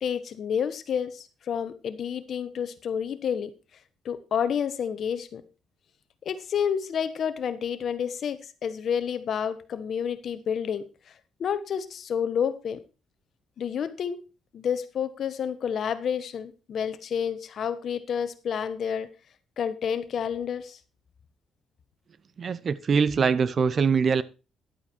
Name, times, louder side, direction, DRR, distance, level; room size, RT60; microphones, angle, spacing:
voice 1, 0.0-3.5 4.0-5.4 6.2-10.8 11.4-12.8 13.6-14.2 14.5-19.1 19.6-20.8, left 7 dB, 60° left, 1.3 m, -29 dB
voice 2, 22.4-24.2, right 5 dB, 45° right, 0.8 m, -23 dB
11.5 x 8.6 x 4.5 m
cardioid pair, 90°, 0 cm